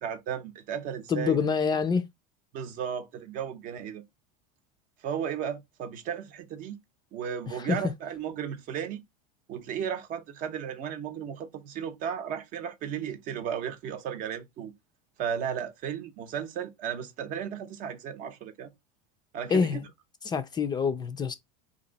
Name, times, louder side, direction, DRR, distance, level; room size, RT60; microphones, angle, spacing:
voice 1, 0.0-1.4 2.5-4.0 5.0-6.7 7.1-9.0 9.5-14.7 15.2-18.7 19.3-19.8, right 8 dB, 45° right, 0.7 m, -34 dB
voice 2, 1.1-2.0 7.5-7.8 19.5-19.9 20.2-21.3, left 5 dB, 20° left, 0.4 m, -26 dB
2.9 x 2.6 x 3.9 m
supercardioid pair, 120°, 19 cm